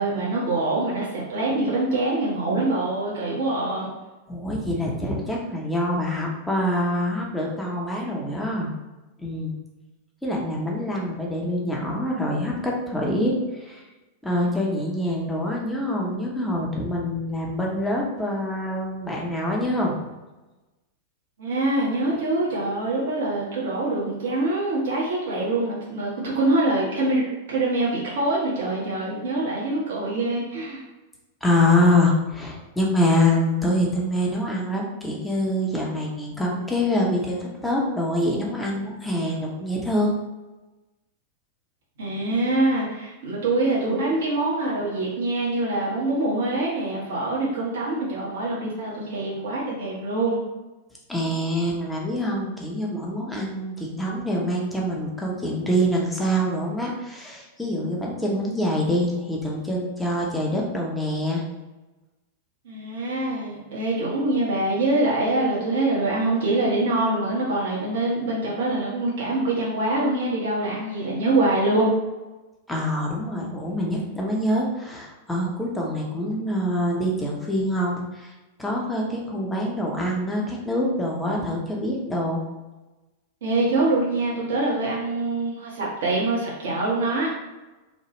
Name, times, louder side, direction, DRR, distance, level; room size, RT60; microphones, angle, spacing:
voice 1, 0.0-3.9 21.4-30.8 42.0-50.4 62.6-71.9 83.4-87.3, right 2 dB, 65° right, -5 dB, 0.9 m, -24 dB
voice 2, 4.3-8.7 9.2-9.5 10.2-13.8 14.2-20.0 31.4-40.1 51.1-61.4 72.7-78.3 78.6-82.4, left 1 dB, 5° left, -2 dB, 0.8 m, -25 dB
3.1 x 2.2 x 3.0 m, 1.1 s
figure-of-eight pair, 95°, 0 cm